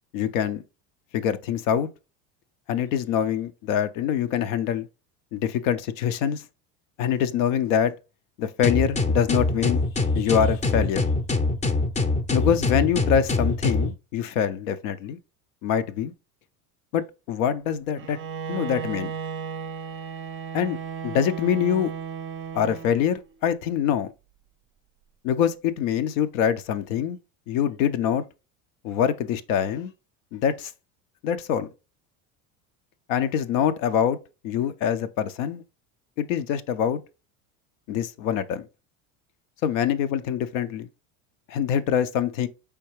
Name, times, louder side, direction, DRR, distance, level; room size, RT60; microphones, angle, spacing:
voice 1, 0.1-0.6 1.1-1.9 2.7-4.9 5.3-6.4 7.0-7.9 8.4-9.8 10.1-11.1 12.3-15.2 15.6-16.1 16.9-18.2 18.5-19.1 20.5-20.8 21.0-21.9 22.5-24.1 25.2-27.2 27.5-28.2 28.8-29.9 30.3-30.7 31.2-31.7 33.1-34.2 34.4-35.6 36.2-37.0 37.9-38.6 39.6-40.9 41.5-42.5, left 8 dB, 75° left, 0.6 m, -24 dB
sound 1, 8.6-13.9, left 3 dB, 20° left, 0.5 m, -24 dB
Bowed string instrument, 18.0-23.3, right 7 dB, 30° right, 0.5 m, -35 dB
4.5 x 3.4 x 3.0 m
supercardioid pair, 100°, 40 cm